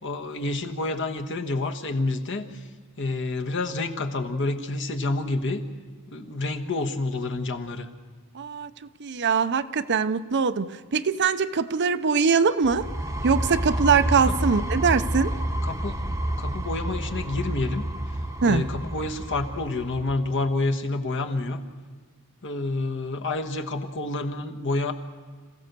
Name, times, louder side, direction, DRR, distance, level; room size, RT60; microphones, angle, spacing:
voice 1, 0.0-2.7 3.0-5.6 6.1-7.9 14.3-14.4 15.6-16.0 16.4-17.8 18.4-21.6 22.4-24.9, left 2 dB, 55° left, 1.3 m, -28 dB
voice 2, 8.3-8.7 9.0-12.8 13.2-15.3 18.4-18.6, right 5 dB, 50° right, 0.6 m, -22 dB
sound 1, 12.6-20.3, right 1 dB, 15° right, 0.9 m, -29 dB
26.5 x 15.5 x 6.7 m
head